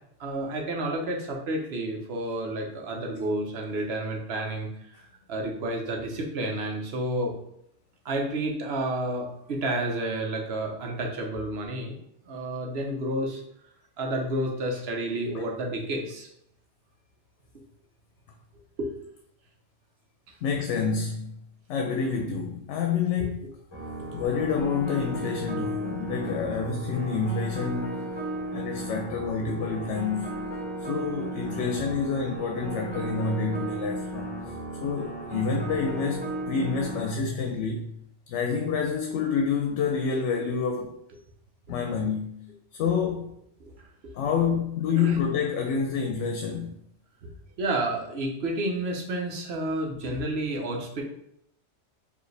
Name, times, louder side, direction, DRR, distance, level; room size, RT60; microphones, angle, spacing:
voice 1, 0.2-4.7 5.3-7.3 8.0-12.0 12.2-13.4 14.0-16.3 18.8-18.9 43.6-43.7 44.0-44.1 44.9-45.2 47.2-47.3 47.6-51.0, right 1 dB, 65° right, 1.0 m, -30 dB
voice 2, 20.4-21.3 21.7-23.4 24.1-28.2 28.5-30.5 30.8-34.4 34.8-37.9 38.3-41.0 41.7-42.4 42.7-43.4 44.1-46.7, left 5 dB, 75° left, 0.9 m, -28 dB
sound 1, 23.7-37.1, right 1 dB, 25° left, 0.9 m, -35 dB
4.7 x 2.7 x 3.2 m
omnidirectional pair, 1.2 m